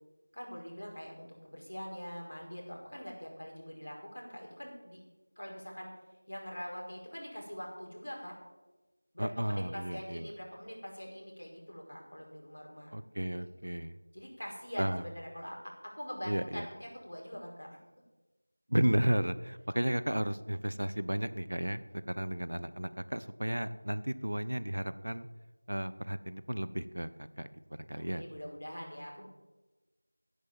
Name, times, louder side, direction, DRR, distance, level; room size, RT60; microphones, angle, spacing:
voice 1, 0.3-5.0 5.4-5.9 6.3-8.4 9.1-13.5 14.1-17.7 27.9-29.3, equal, 80° left, -1 dB, 5.5 m, -44 dB
voice 2, 9.2-10.3 12.9-14.0 14.8-15.0 16.3-16.7 18.7-25.3 25.7-27.1 27.4-27.5 27.8-28.2, right 1 dB, 75° right, 14 dB, 0.9 m, -33 dB
12.0 x 10.0 x 7.4 m, 1.2 s
figure-of-eight pair, 175°, 0 cm